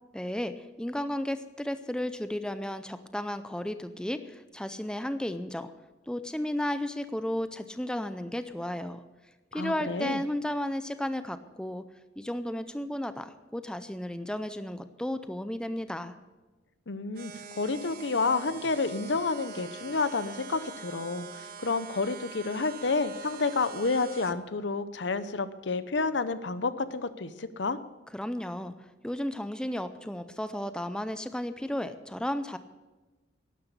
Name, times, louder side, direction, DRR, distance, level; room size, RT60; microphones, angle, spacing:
voice 1, 0.1-5.7 6.1-9.0 9.5-11.8 12.2-16.2 28.1-28.7 29.0-32.6, left 1 dB, 5° left, 11 dB, 0.5 m, -33 dB
voice 2, 9.5-10.2 16.9-27.8, left 4 dB, 70° left, 13 dB, 0.8 m, -30 dB
sound 1, 17.1-24.3, right 6 dB, 50° right, 0.8 m, -45 dB
12.0 x 11.0 x 6.7 m, 1.2 s
head